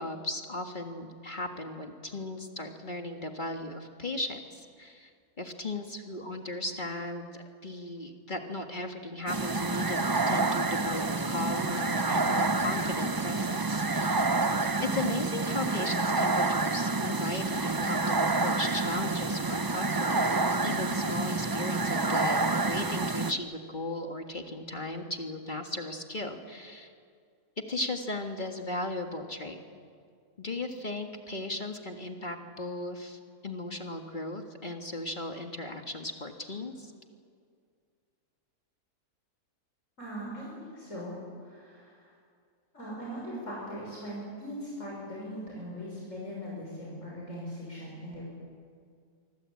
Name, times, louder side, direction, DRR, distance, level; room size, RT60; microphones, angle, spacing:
voice 1, 0.0-5.1 5.4-14.3 14.8-20.3 20.6-26.9 27.7-29.6 30.4-36.9, left 2 dB, 30° left, 4 dB, 1.9 m, -36 dB
sound 1, 9.3-23.3, right 3 dB, 35° right, 0.3 m, -28 dB
voice 2, 40.0-41.1 41.4-42.1 42.7-48.3, equal, 50° left, -4 dB, 6.4 m, -40 dB
25.5 x 24.5 x 8.6 m, 2.2 s
omnidirectional pair, 1.6 m